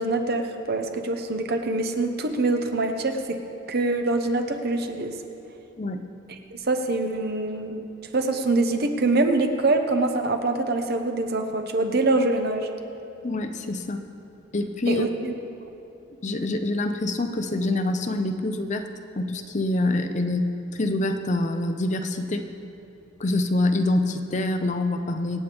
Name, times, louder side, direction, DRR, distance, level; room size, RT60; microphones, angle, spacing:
voice 1, 0.0-3.4 3.7-5.1 6.5-7.8 8.1-12.7 14.9-15.3, right 2 dB, 50° right, 5 dB, 1.0 m, -24 dB
voice 2, 13.2-14.0 14.5-15.0 16.2-18.9 19.2-20.4 20.8-22.5 23.2-25.4, left 2 dB, 35° left, 7 dB, 0.6 m, -25 dB
25.0 x 8.5 x 3.5 m, 2.7 s
head